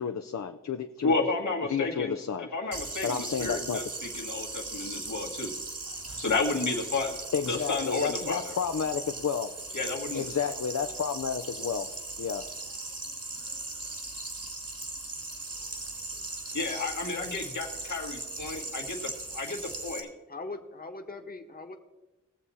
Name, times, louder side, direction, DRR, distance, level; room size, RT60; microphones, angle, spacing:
voice 1, 0.0-1.1 1.7-2.5 3.0-3.8 7.3-9.5 10.1-11.9 12.2-12.5, left 7 dB, 65° left, 7 dB, 0.6 m, -31 dB
voice 2, 1.0-2.2 2.5-5.5 6.2-7.2 7.5-8.5 9.7-10.3 16.5-20.1, left 3 dB, 85° left, 0 dB, 1.9 m, -31 dB
sound 1, 2.7-20.0, right 2 dB, 55° right, 2.1 m, -38 dB
voice 3, 20.3-21.8, left 3 dB, 30° left, 5 dB, 1.3 m, -40 dB
19.5 x 7.2 x 4.2 m, 1.1 s
wide cardioid pair, 55°, 29 cm